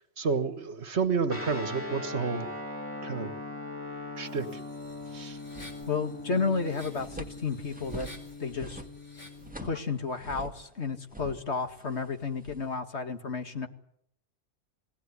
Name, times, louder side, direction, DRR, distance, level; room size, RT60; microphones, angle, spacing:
voice 1, 0.2-2.5 3.0-3.3 4.2-4.6 5.1-5.4, right 5 dB, 70° right, 1.8 m, -30 dB
Guitar, 1.3-9.8, left 2 dB, 10° left, 2.5 m, -40 dB
sound 1, 4.2-9.5, left 1 dB, 85° left, 5.3 m, -53 dB
sound 2, 5.4-6.2 6.5-10.7 11.1-12.8, right 2 dB, 5° right, 1.6 m, -46 dB
voice 2, 5.9-8.1 8.4-8.8 9.6-13.7, left 4 dB, 70° left, 2.4 m, -32 dB
23.0 x 17.0 x 9.8 m
omnidirectional pair, 1.2 m